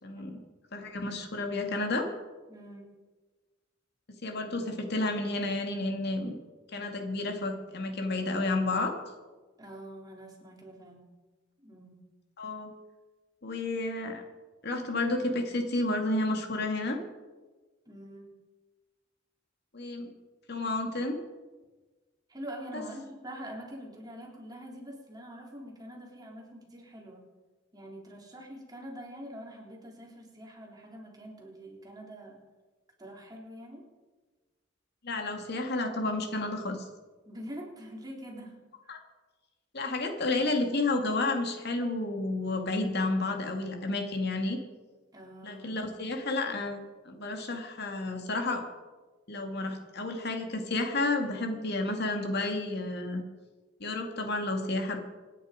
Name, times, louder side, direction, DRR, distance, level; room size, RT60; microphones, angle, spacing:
voice 1, 0.0-0.4 0.7-2.1 4.2-6.4 6.7-8.9 12.4-12.7 13.4-14.2 14.6-17.0 19.7-20.1 20.5-21.2 22.7-22.8 35.0-36.9 38.9-39.0 39.7-44.6 45.4-48.7 49.3-53.2 53.8-55.0, left 2 dB, 60° left, 4 dB, 2.2 m, -31 dB
voice 2, 2.5-2.9 9.6-11.1 11.6-12.0 17.9-18.3 22.3-27.3 27.7-32.4 33.0-33.8 37.3-38.9 45.1-45.7, equal, 20° right, -1 dB, 3.5 m, -45 dB
26.5 x 10.0 x 5.1 m, 1.3 s
head